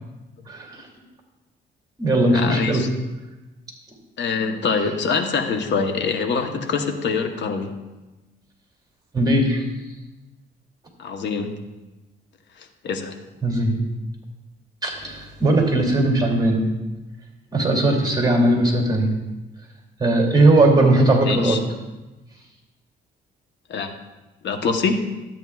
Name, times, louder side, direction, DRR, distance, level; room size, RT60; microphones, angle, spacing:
voice 1, 0.5-0.8 2.0-2.8 9.1-9.6 13.4-13.8 14.8-16.6 17.5-19.1 20.0-21.6, right 2 dB, 20° right, 0 dB, 2.6 m, -18 dB
voice 2, 2.3-2.9 4.2-7.7 11.0-11.5 12.6-13.1 21.0-21.6 23.7-23.9 24.4-25.1, left 5 dB, 65° left, 6 dB, 1.0 m, -24 dB
13.0 x 8.9 x 2.4 m, 1.1 s
cardioid pair, 90°, 20 cm